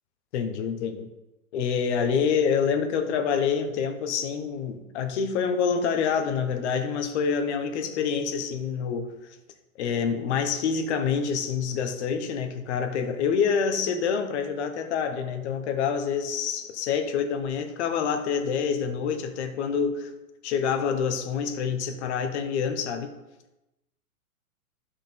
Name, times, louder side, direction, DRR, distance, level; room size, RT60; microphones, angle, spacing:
voice 1, 0.3-1.1 1.5-9.1 9.8-20.1 20.4-23.1, left 6 dB, 50° left, 7 dB, 1.2 m, -27 dB
12.0 x 5.0 x 3.9 m, 0.99 s
hypercardioid pair, 130°, 44 cm